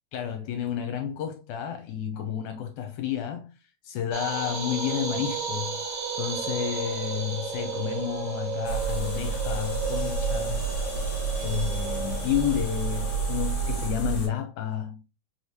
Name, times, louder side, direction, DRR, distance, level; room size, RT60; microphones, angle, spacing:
voice 1, 0.1-3.5 3.8-10.8 11.4-15.0, left 10 dB, 80° left, 2.0 m, -31 dB
sound 1, 4.1-13.9, right 5 dB, 50° right, 1.2 m, -33 dB
sound 2, 8.6-14.3, right 4 dB, 55° left, 1.2 m, -30 dB
5.2 x 3.2 x 2.9 m
omnidirectional pair, 3.6 m